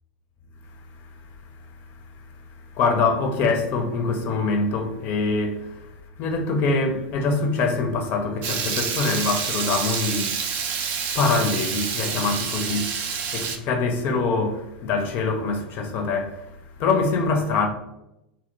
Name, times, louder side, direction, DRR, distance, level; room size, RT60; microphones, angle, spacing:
voice 1, 0.7-17.7, left 4 dB, 40° left, 0.5 m, -25 dB
Water tap faucet / Liquid, 8.4-13.6, right 6 dB, 40° right, 0.4 m, -28 dB
2.7 x 2.0 x 2.5 m
figure-of-eight pair, 85°, 5 cm